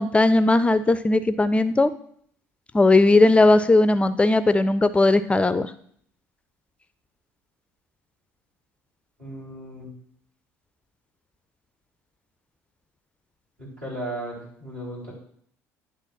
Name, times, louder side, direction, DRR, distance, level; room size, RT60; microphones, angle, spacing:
voice 1, 0.0-1.9 2.7-5.7, left 2 dB, 15° left, 13 dB, 0.4 m, -18 dB
voice 2, 9.2-9.9 13.6-15.1, right 1 dB, 75° right, -6 dB, 4.0 m, -35 dB
9.7 x 3.4 x 6.0 m, 0.63 s
figure-of-eight pair, 60°, 8 cm